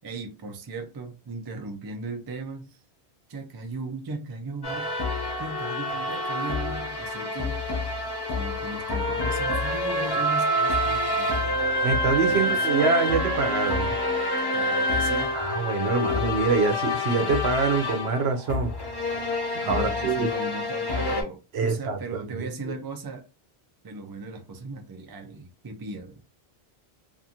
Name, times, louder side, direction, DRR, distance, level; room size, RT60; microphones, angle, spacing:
voice 1, 0.0-2.8 3.3-4.9 5.4-7.9 8.3-11.6 12.3-12.6 14.5-15.4 19.6-23.3 23.8-26.2, right 3 dB, 40° right, 0.3 m, -37 dB
sound 1, 4.6-21.2, left 1 dB, 30° left, 0.5 m, -27 dB
voice 2, 11.8-13.9 15.3-18.7 19.5-20.3 21.5-22.7, right 4 dB, 75° right, 0.9 m, -25 dB
2.5 x 2.5 x 2.7 m
omnidirectional pair, 1.1 m